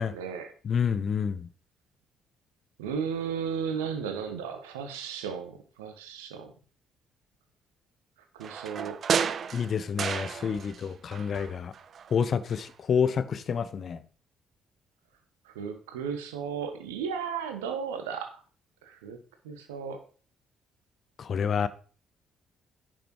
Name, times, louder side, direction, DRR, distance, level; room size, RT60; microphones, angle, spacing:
voice 1, 0.0-0.5 2.8-6.5 8.3-9.0 15.4-18.4 18.8-19.2 19.4-20.0, right 7 dB, 75° right, 1.4 m, -35 dB
voice 2, 0.6-1.5 9.5-11.7 12.1-14.0 21.2-21.7, left 7 dB, 45° left, 0.8 m, -28 dB
sound 1, 8.4-10.9 11.1-12.2 12.5-12.6, right 7 dB, 50° right, 0.6 m, -32 dB
10.5 x 6.4 x 4.7 m
figure-of-eight pair, 45°, 0 cm